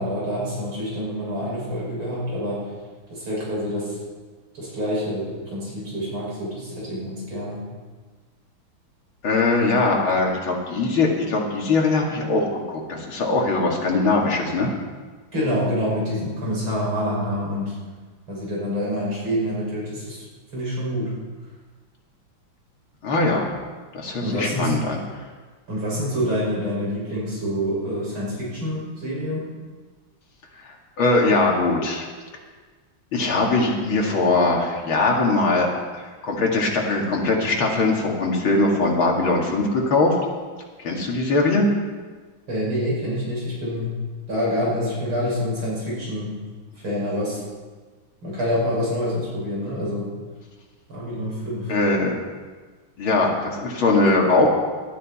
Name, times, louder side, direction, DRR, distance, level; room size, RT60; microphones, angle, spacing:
voice 1, 0.0-2.7 3.1-4.0 4.5-7.6 15.3-17.8 18.3-20.2 20.5-21.1 24.2-24.7 25.7-29.5 42.5-43.9 44.3-46.3 46.8-47.4 48.2-50.1 50.9-51.7, equal, 85° right, -6 dB, 7.0 m, -26 dB
voice 2, 9.2-14.7 23.0-23.5 23.9-25.0 30.6-32.0 33.1-35.7 35.9-40.1 40.8-41.7 51.7-52.2 53.0-54.5, left 3 dB, 80° left, -1 dB, 3.1 m, -21 dB
19.0 x 13.0 x 4.3 m, 1.4 s
omnidirectional pair, 2.2 m